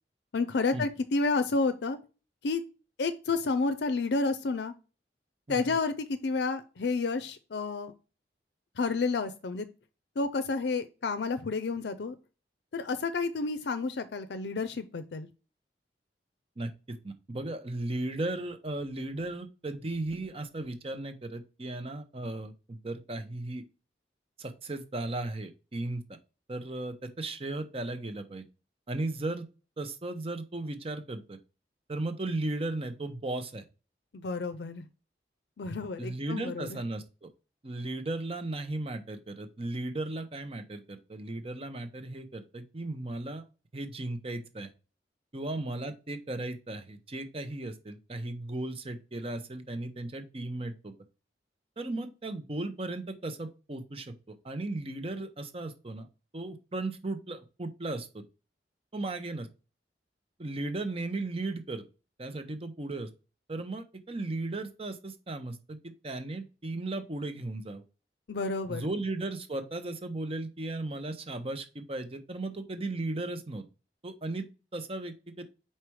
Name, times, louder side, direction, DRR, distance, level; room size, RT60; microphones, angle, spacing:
voice 1, 0.3-2.0 2.4-2.6 3.0-4.7 5.5-7.9 8.8-9.7 10.2-12.1 12.7-15.3 34.1-34.8 35.6-36.8 68.3-68.9, left 4 dB, 70° left, 0.5 m, -30 dB
voice 2, 16.6-23.6 24.4-26.0 26.5-28.5 28.9-29.5 29.8-31.4 31.9-33.6 36.0-37.3 37.6-43.4 43.7-44.7 45.3-50.9 51.8-56.1 56.3-58.2 58.9-59.5 60.4-61.8 62.2-63.1 63.5-67.8 68.7-73.6 74.0-75.4, right 2 dB, 30° right, 0.7 m, -36 dB
4.9 x 4.4 x 4.6 m
head